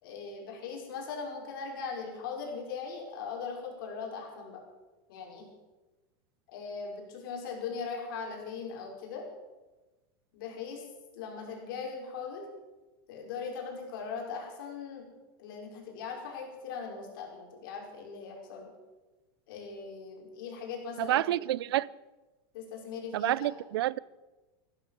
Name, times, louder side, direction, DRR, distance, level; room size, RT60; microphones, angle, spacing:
voice 1, 0.0-4.6 5.1-5.5 6.5-9.3 10.3-10.9 11.1-12.5 13.1-15.1 15.4-18.7 19.5-21.4 22.5-23.5, left 5 dB, 60° left, 5.4 m, -39 dB
voice 2, 21.0-21.9 23.1-24.0, right 14 dB, 80° right, 0.5 m, -28 dB
15.0 x 12.5 x 7.4 m
supercardioid pair, 170°, 13 cm